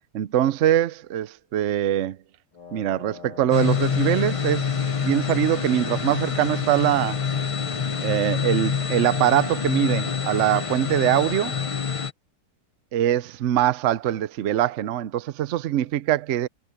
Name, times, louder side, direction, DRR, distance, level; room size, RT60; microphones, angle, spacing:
voice 1, 0.1-2.2 2.7-4.8 5.0-7.2 8.0-11.5 12.9-16.5, right 12 dB, 65° right, 0.7 m, -23 dB
Wind instrument woodwind instrument, 2.5-11.9, left 6 dB, 80° left, 4.1 m, -43 dB
sound 1, 3.5-12.1, left 6 dB, 40° left, 0.5 m, -26 dB
omnidirectional pair, 1.9 m